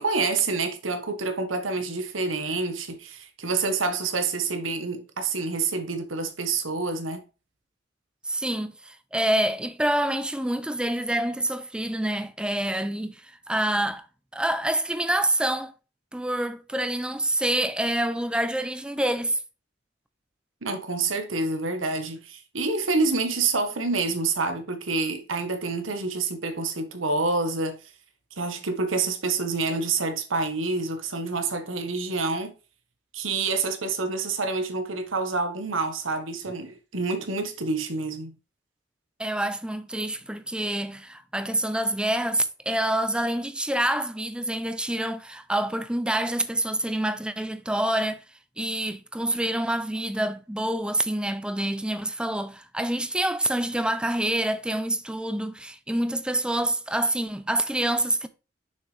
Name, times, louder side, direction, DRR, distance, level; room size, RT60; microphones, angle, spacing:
voice 1, 0.0-7.2 20.6-27.9 28.4-32.5 33.1-38.3, right 3 dB, 85° right, 1.3 m, -27 dB
voice 2, 8.2-14.1 14.3-15.7 16.1-19.4 39.2-48.2 48.6-58.3, right 1 dB, 5° right, 0.5 m, -27 dB
6.4 x 5.9 x 3.3 m
head